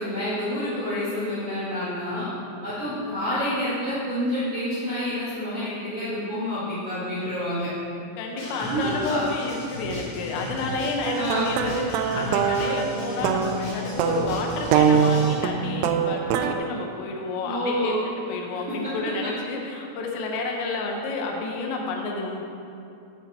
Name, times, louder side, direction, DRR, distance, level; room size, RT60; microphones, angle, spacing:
voice 1, 0.0-2.3 2.6-7.7 8.7-9.3 11.1-11.6 17.4-18.1, equal, 55° right, -12 dB, 1.6 m, -28 dB
voice 2, 8.2-17.9 18.3-22.4, left 3 dB, 80° left, 1 dB, 3.5 m, -30 dB
Screaming, 8.4-15.4, left 1 dB, 55° left, 3.6 m, -35 dB
sound 1, 11.0-16.5, right 7 dB, 85° right, 2.9 m, -23 dB
8.6 x 8.0 x 4.3 m, 2.7 s
omnidirectional pair, 5.9 m